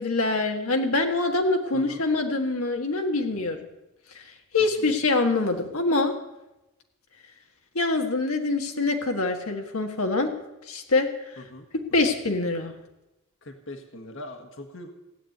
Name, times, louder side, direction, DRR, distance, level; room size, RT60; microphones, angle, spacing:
voice 1, 0.0-3.6 4.1-4.2 4.5-6.1 7.7-10.3 10.7-11.1 11.9-12.7, left 3 dB, 80° left, 3 dB, 1.6 m, -24 dB
voice 2, 1.7-2.0 4.8-4.9 11.4-11.7 12.0-12.1 13.4-14.9, left 1 dB, 60° left, 5 dB, 1.6 m, -41 dB
16.0 x 8.3 x 9.2 m, 0.97 s
head